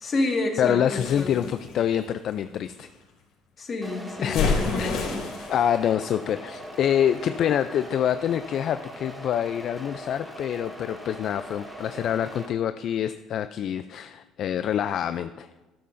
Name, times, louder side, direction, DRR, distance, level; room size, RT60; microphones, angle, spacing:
voice 1, 0.0-1.5 3.6-5.3, left 2 dB, 35° left, 2 dB, 1.8 m, -29 dB
voice 2, 0.6-2.9 4.2-5.1 5.5-15.5, left 9 dB, 55° left, 11 dB, 0.3 m, -26 dB
sound 1, 1.0-2.9 4.3-5.6, left 4 dB, 75° left, 2.7 m, -29 dB
sound 2, 3.8-12.5, equal, 5° right, 1.7 m, -41 dB
12.5 x 12.5 x 2.6 m, 1.1 s
cardioid pair, 130°, 0 cm